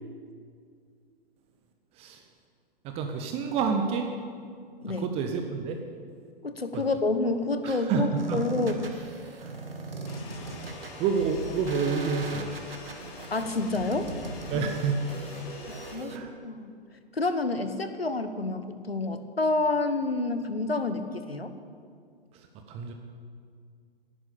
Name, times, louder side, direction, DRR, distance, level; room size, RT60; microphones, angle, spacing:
voice 1, 1.9-2.3 2.8-4.1 4.9-5.8 6.7-6.9 7.6-8.5 9.4-9.5 10.3-10.4 10.9-12.5 14.5-15.1 15.6-15.7 16.1-16.3 22.3-22.9, right 5 dB, 20° right, 5 dB, 0.8 m, -29 dB
voice 2, 6.4-9.0 13.3-14.1 15.9-16.2 16.4-16.7 17.1-21.6, left 2 dB, 85° left, 9 dB, 1.2 m, -28 dB
sound 1, 8.2-16.2, right 2 dB, 75° right, 1.8 m, -39 dB
sound 2, 10.0-16.0, left 3 dB, 30° left, 2.5 m, -45 dB
11.0 x 10.5 x 8.6 m, 2.2 s
figure-of-eight pair, 115°, 29 cm